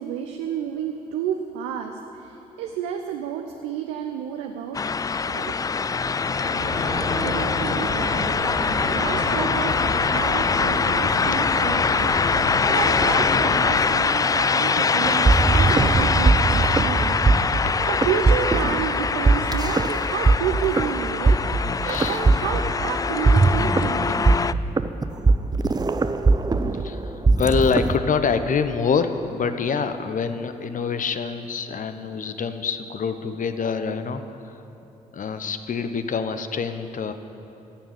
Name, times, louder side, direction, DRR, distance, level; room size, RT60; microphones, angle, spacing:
voice 1, 0.0-4.8 5.2-5.5 7.2-8.3 8.9-12.2 12.7-17.2 17.5-24.5, right 8 dB, 75° right, 5 dB, 0.7 m, -30 dB
sound 1, 4.7-24.5, left 5 dB, 20° left, 0.3 m, -23 dB
sound 2, 6.4-13.7, left 1 dB, 75° left, 2.3 m, -30 dB
sound 3, 14.9-28.0, right 3 dB, 20° right, 0.7 m, -20 dB
voice 2, 21.8-22.2 26.7-34.2 34.5-34.6 35.1-37.1, left 5 dB, 45° left, 10 dB, 0.9 m, -26 dB
14.5 x 7.3 x 8.8 m, 3.0 s
hypercardioid pair, 40°, 19 cm